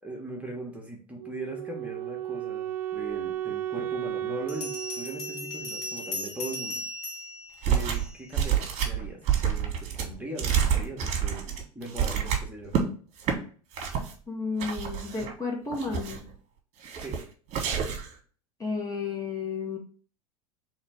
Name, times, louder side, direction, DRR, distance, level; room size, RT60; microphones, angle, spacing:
voice 1, 0.0-6.9 7.6-12.8 17.0-17.1, right 1 dB, 5° right, -1 dB, 1.2 m, -40 dB
Wind instrument woodwind instrument, 1.2-6.2, right 12 dB, 65° right, 0.4 m, -34 dB
Bell, 3.3-3.4 4.5-8.4, left 1 dB, 75° left, 1.3 m, -37 dB
sound 1, 7.6-8.1 8.3-12.8 13.2-13.4 13.7-14.1 14.6-15.3 15.7-16.3 16.8-17.2 17.5-18.1, right 8 dB, 40° right, 1.3 m, -28 dB
voice 2, 14.3-16.2 18.6-19.8, left 4 dB, 20° left, -1 dB, 1.2 m, -32 dB
3.2 x 3.2 x 4.7 m, 0.41 s
hypercardioid pair, 85°, 18 cm